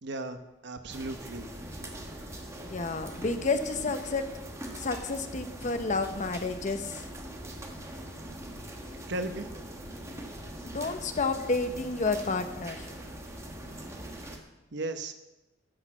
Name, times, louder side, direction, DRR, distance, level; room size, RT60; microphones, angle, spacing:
voice 1, 0.0-1.5 9.1-9.5 14.7-15.1, right 2 dB, 65° right, 8 dB, 0.9 m, -36 dB
sound 1, 0.9-14.4, right 1 dB, 15° right, 1.3 m, -42 dB
voice 2, 2.6-4.2 4.7-7.0 10.6-12.9, left 3 dB, 40° left, 8 dB, 0.8 m, -30 dB
11.0 x 6.5 x 7.3 m, 1.0 s
head